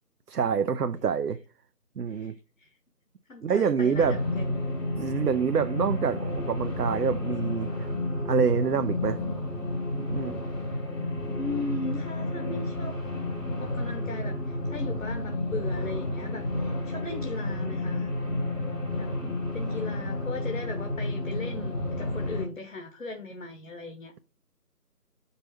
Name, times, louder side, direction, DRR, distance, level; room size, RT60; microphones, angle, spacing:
voice 1, 0.3-1.4 2.0-2.3 3.4-4.2 5.0-7.9 8.2-9.2 10.0-10.4, right 6 dB, 75° right, 0.7 m, -26 dB
voice 2, 2.1-2.7 3.3-4.6 11.3-13.0 13.6-18.1 19.0-19.1 19.5-24.1, left 3 dB, 55° left, 1.3 m, -38 dB
sound 1, 3.9-22.5, left 1 dB, 85° left, 3.1 m, -31 dB
5.4 x 4.0 x 5.6 m
figure-of-eight pair, 170°, 48 cm